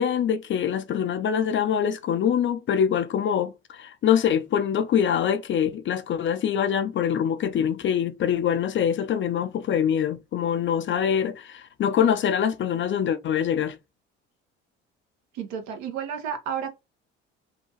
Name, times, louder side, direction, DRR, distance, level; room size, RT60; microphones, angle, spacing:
voice 1, 0.0-13.8, left 8 dB, 40° left, 0.5 m, -24 dB
voice 2, 15.3-16.7, right 8 dB, 65° right, 0.9 m, -31 dB
2.8 x 2.3 x 2.9 m
hypercardioid pair, 55°, 31 cm